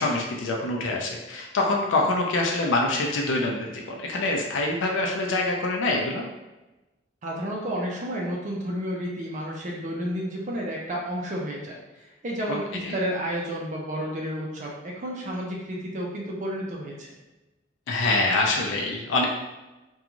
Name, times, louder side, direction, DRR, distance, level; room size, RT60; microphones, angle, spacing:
voice 1, 0.0-6.2 12.5-12.6 12.8-12.9 17.9-19.3, left 2 dB, 90° left, 0 dB, 0.4 m, -25 dB
voice 2, 7.2-11.8 12.0-17.1, equal, 40° right, -2 dB, 0.5 m, -31 dB
2.5 x 2.3 x 2.9 m, 1.1 s
head